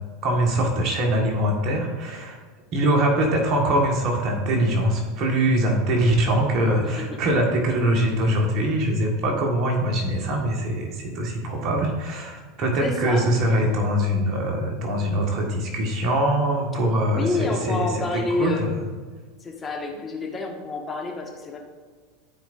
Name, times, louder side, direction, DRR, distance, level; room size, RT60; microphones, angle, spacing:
voice 1, 0.2-2.4 2.7-18.8, right 1 dB, 50° right, 0 dB, 1.7 m, -23 dB
voice 2, 6.8-7.2 12.8-13.7 17.1-18.8 19.4-21.6, left 3 dB, 25° left, 1 dB, 1.6 m, -29 dB
14.0 x 4.8 x 2.6 m, 1.5 s
hypercardioid pair, 85°, 0 cm